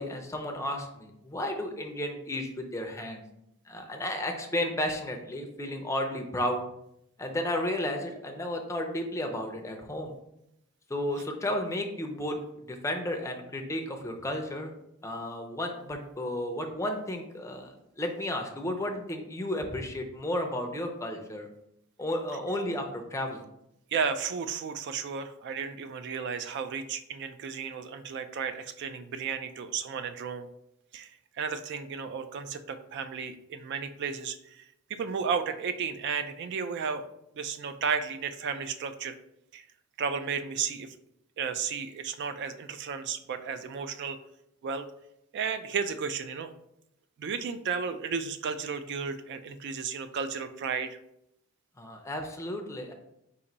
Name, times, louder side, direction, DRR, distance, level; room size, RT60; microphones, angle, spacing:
voice 1, 0.0-3.2 3.7-6.6 7.2-10.1 10.9-14.7 15.0-21.5 22.0-23.4 51.8-52.9, left 1 dB, 15° left, 3 dB, 0.5 m, -33 dB
voice 2, 23.9-30.5 30.9-34.6 34.9-37.1 37.4-39.2 39.5-39.6 40.0-40.9 41.4-44.2 44.6-44.9 45.3-46.5 47.2-51.0, right 6 dB, 55° right, 10 dB, 0.3 m, -33 dB
4.2 x 2.6 x 3.9 m, 0.80 s
head